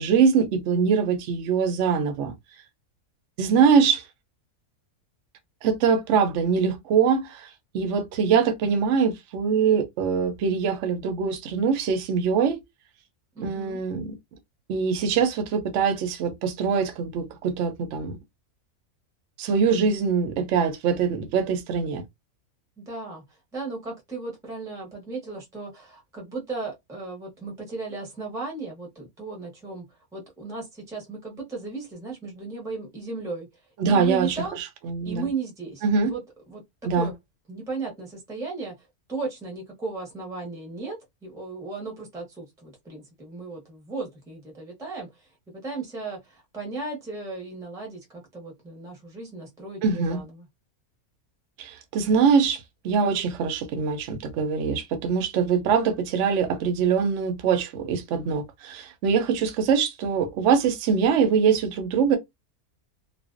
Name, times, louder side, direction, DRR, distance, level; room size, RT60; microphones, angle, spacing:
voice 1, 0.0-2.3 3.4-4.1 5.6-12.6 13.4-14.1 14.7-18.2 19.4-22.0 33.8-35.3 35.8-36.1 36.8-37.1 49.8-50.2 51.6-62.2, right 6 dB, 65° right, 0.8 m, -23 dB
voice 2, 13.3-13.8 22.8-23.2 23.5-33.5 33.9-34.6 35.0-36.2 36.5-37.1 37.5-38.7 39.1-50.5, right 3 dB, 5° right, 0.5 m, -35 dB
2.4 x 2.1 x 2.4 m
omnidirectional pair, 1.5 m